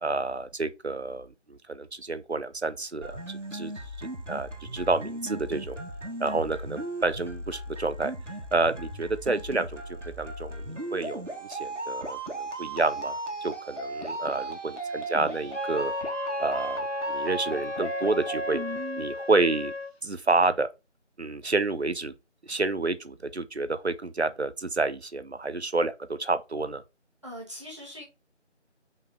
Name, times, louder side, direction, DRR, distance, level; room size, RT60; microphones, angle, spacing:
voice 1, 0.0-3.7 4.0-5.8 6.2-8.1 8.5-15.9 16.4-18.6 19.0-19.7 20.0-20.7 21.2-22.1 22.4-26.8, right 3 dB, 60° right, 1.0 m, -29 dB
sound 1, 3.0-19.0, right 2 dB, 80° right, 2.4 m, -36 dB
Wind instrument woodwind instrument, 15.5-19.9, left 4 dB, 60° left, 0.9 m, -35 dB
voice 2, 27.2-28.0, equal, 25° right, 1.5 m, -42 dB
5.7 x 5.1 x 4.3 m
figure-of-eight pair, 170°, 36 cm